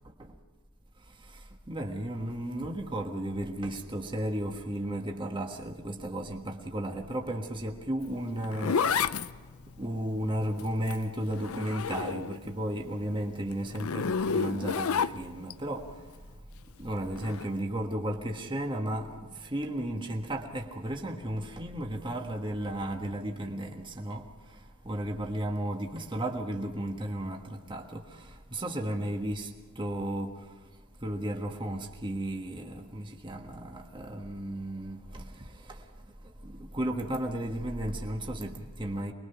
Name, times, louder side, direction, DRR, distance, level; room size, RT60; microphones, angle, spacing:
voice 1, 1.7-8.8 9.8-15.9 16.8-24.2 24.8-29.5 29.7-30.3 31.0-35.8 36.4-39.1, right 1 dB, 25° right, 1.5 m, -34 dB
Zipper (clothing), 8.0-12.5 12.9-15.5 17.1-17.5, left 6 dB, 80° left, 0.6 m, -31 dB
25.0 x 21.0 x 5.8 m
head